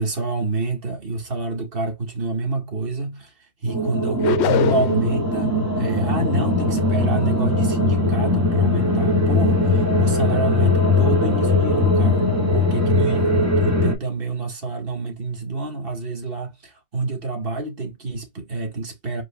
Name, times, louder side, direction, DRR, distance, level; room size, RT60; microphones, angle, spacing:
voice 1, 0.0-12.2 12.5-19.2, right 3 dB, 55° right, 1.9 m, -28 dB
sound 1, 3.7-13.9, left 2 dB, 15° right, 1.2 m, -20 dB
sound 2, 4.2-5.1, left 11 dB, 75° left, 0.8 m, -22 dB
4.9 x 4.5 x 2.3 m
omnidirectional pair, 1.2 m